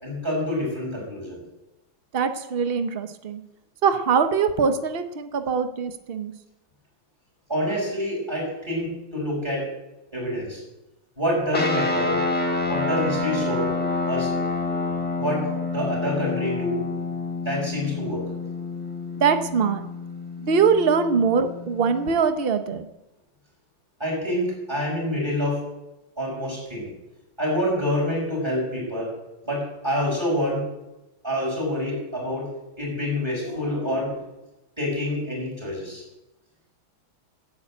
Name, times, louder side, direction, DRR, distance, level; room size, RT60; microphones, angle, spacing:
voice 1, 0.0-1.4 7.5-9.7 10.1-10.6 11.2-12.2 12.7-13.7 14.1-14.3 15.2-16.8 17.4-18.3 24.0-25.6 26.2-26.9 27.4-29.1 29.5-30.6 31.2-32.5 32.8-34.2 34.8-36.0, left 1 dB, 10° right, -2 dB, 5.8 m, -27 dB
voice 2, 2.1-3.4 3.8-6.3 19.2-19.8 20.4-22.9, right 6 dB, 70° right, 10 dB, 0.5 m, -22 dB
sound 1, 11.5-22.2, left 3 dB, 5° left, 1.3 m, -28 dB
10.5 x 8.6 x 8.6 m, 0.96 s
omnidirectional pair, 2.3 m